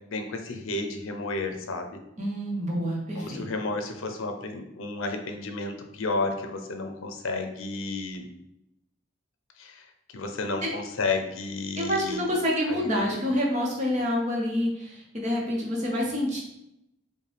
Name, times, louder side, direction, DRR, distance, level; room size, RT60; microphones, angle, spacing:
voice 1, 0.1-2.0 3.2-8.3 9.6-9.8 10.1-12.3 12.7-13.2, left 3 dB, 80° left, 5 dB, 0.6 m, -32 dB
voice 2, 2.2-3.4 10.6-10.7 11.8-16.4, equal, 35° right, -2 dB, 0.9 m, -27 dB
5.1 x 2.2 x 3.3 m, 0.82 s
head